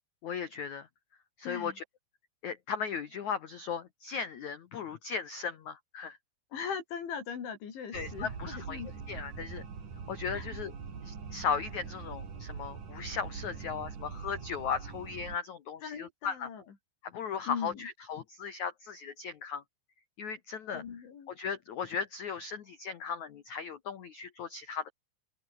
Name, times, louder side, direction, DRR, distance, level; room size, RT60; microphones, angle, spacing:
voice 1, 0.2-0.9 1.4-1.8 2.4-6.2 7.9-9.6 10.1-10.7 11.0-16.5 17.0-19.6 20.2-20.8 21.3-24.9, left 6 dB, 90° left, 1.6 m, -37 dB
voice 2, 1.4-1.8 6.5-8.9 10.3-10.6 15.8-16.6 17.5-17.9 20.7-21.3, left 7 dB, 70° left, 6.4 m, -40 dB
sound 1, 7.9-15.4, right 6 dB, 40° right, 5.1 m, -43 dB
open air
omnidirectional pair, 5.7 m